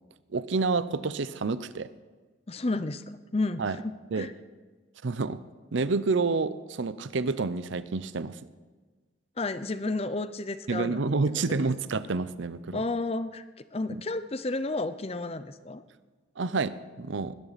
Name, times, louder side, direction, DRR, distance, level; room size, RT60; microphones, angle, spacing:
voice 1, 0.3-1.9 3.6-3.8 4.1-4.3 5.0-5.4 5.7-8.4 10.7-12.8 13.9-14.0 16.4-17.3, right 4 dB, 75° right, 15 dB, 0.6 m, -29 dB
voice 2, 2.5-3.0 3.3-4.3 9.4-11.7 12.7-15.8, left 2 dB, 30° left, 13 dB, 0.6 m, -32 dB
20.5 x 10.0 x 4.1 m, 1.4 s
head